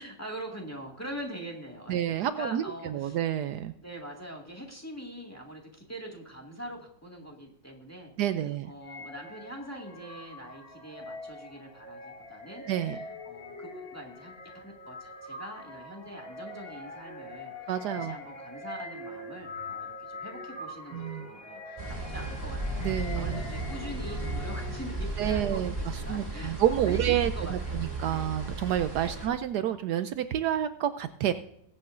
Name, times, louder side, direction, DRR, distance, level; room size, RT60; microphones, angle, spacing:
voice 1, 0.0-3.2 3.8-8.1 8.6-12.6 12.9-13.0 13.2-25.7 26.0-28.3 29.0-29.2, equal, 10° left, -1 dB, 1.8 m, -43 dB
voice 2, 1.9-3.7 8.2-8.7 12.7-13.0 17.7-18.2 20.9-21.3 22.8-23.4 25.2-25.7 26.1-31.3, right 11 dB, 75° right, 11 dB, 1.1 m, -29 dB
sound 1, 8.8-25.0, left 2 dB, 35° left, 1.8 m, -43 dB
sound 2, 21.8-29.3, right 2 dB, 20° right, 3.7 m, -34 dB
21.5 x 8.5 x 2.5 m, 0.74 s
omnidirectional pair, 1.9 m